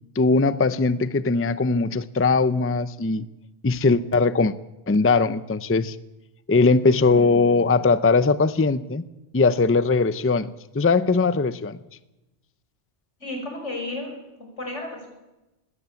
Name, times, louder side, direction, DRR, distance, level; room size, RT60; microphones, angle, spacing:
voice 1, 0.2-3.3 3.6-4.5 4.9-6.0 6.5-9.0 9.3-11.8, left 4 dB, 15° left, 14 dB, 0.5 m, -20 dB
voice 2, 7.1-7.8 13.2-15.1, left 2 dB, 90° left, 2 dB, 6.4 m, -34 dB
21.0 x 17.0 x 8.4 m, 0.98 s
omnidirectional pair, 1.2 m